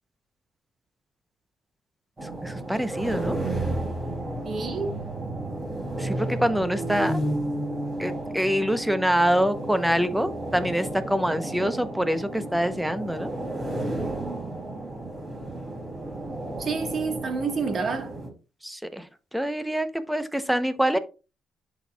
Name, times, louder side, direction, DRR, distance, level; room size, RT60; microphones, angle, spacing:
sound 1, 2.2-18.3, right 1 dB, 25° right, 2.9 m, -32 dB
voice 1, 2.4-3.4 6.0-7.2 8.0-13.3 18.6-19.1 19.3-21.0, equal, 5° right, 0.7 m, -25 dB
voice 2, 4.4-5.0 16.6-18.1, right 5 dB, 50° right, 1.4 m, -28 dB
10.5 x 4.3 x 2.3 m
cardioid pair, 90°, 0 cm